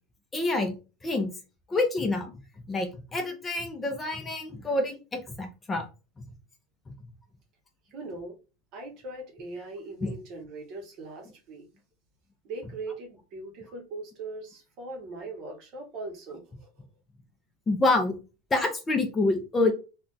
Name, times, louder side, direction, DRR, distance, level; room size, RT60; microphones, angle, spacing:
voice 1, 0.3-0.7 1.0-1.3 1.7-2.3 2.7-5.9 6.2-6.3 10.0-10.1 17.7-18.2 18.5-19.7, left 2 dB, 15° left, 0.4 m, -27 dB
voice 2, 7.9-8.4 8.7-11.7 12.4-16.8, right 2 dB, 40° right, 0.9 m, -40 dB
2.3 x 2.2 x 3.8 m
supercardioid pair, 175°, 0 cm